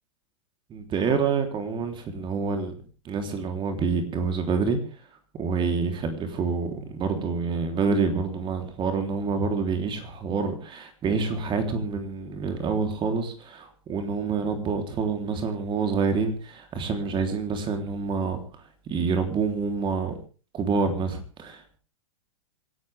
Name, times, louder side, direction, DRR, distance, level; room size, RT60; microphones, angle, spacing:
voice 1, 0.7-2.7 3.1-4.8 5.3-18.4 18.9-20.1 20.5-21.8, right 5 dB, 30° right, 6 dB, 3.5 m, -27 dB
26.0 x 12.0 x 3.5 m, 0.36 s
hypercardioid pair, 105°, 17 cm